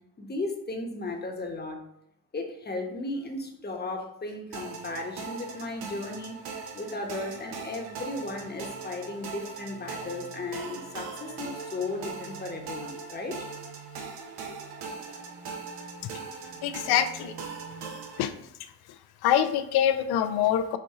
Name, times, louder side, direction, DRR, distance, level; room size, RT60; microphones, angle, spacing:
voice 1, 0.2-1.8 2.3-6.3 6.7-13.4 14.0-14.1, left 2 dB, 25° left, 2 dB, 1.0 m, -35 dB
sound 1, 4.5-18.2, right 5 dB, 70° right, 0.8 m, -40 dB
voice 2, 16.6-17.3 18.2-18.3 19.2-20.8, left 10 dB, 75° left, 10 dB, 0.5 m, -24 dB
4.4 x 2.6 x 3.6 m, 0.76 s
supercardioid pair, 65°, 39 cm